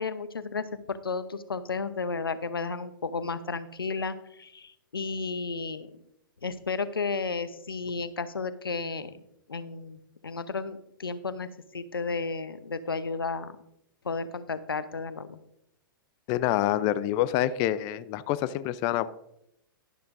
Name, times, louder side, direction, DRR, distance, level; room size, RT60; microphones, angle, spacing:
voice 1, 0.0-5.9 6.4-9.2 9.5-13.6 14.0-15.4, left 4 dB, 90° left, 13 dB, 0.8 m, -33 dB
voice 2, 16.3-19.1, left 13 dB, 35° left, 15 dB, 0.5 m, -27 dB
12.0 x 12.0 x 2.6 m, 0.78 s
hypercardioid pair, 115°, 12 cm